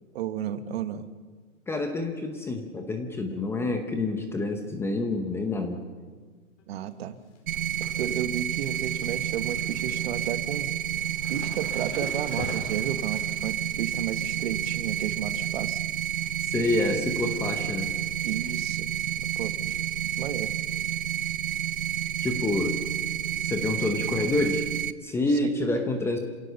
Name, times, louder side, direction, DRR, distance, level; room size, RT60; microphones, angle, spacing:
voice 1, 0.1-1.1 6.7-7.2 7.9-10.7 11.3-15.8 18.2-19.8 20.2-20.5 25.4-25.5, right 10 dB, 50° right, 11 dB, 1.4 m, -33 dB
voice 2, 1.7-5.8 16.5-17.9 22.2-22.8 23.4-24.7 25.0-26.2, left 2 dB, 5° left, 5 dB, 0.9 m, -27 dB
sound 1, 6.6-6.9 7.2-16.4 16.7-17.2 17.5-18.3 18.6-18.7 19.7-20.0 20.2-20.3 20.7-20.8 22.4-22.5 23.2-23.3, left 3 dB, 55° left, 5.1 m, -45 dB
sound 2, 7.5-24.9, right 10 dB, 85° right, 1.0 m, -30 dB
28.0 x 17.0 x 6.9 m, 1.5 s
hypercardioid pair, 160°, 41 cm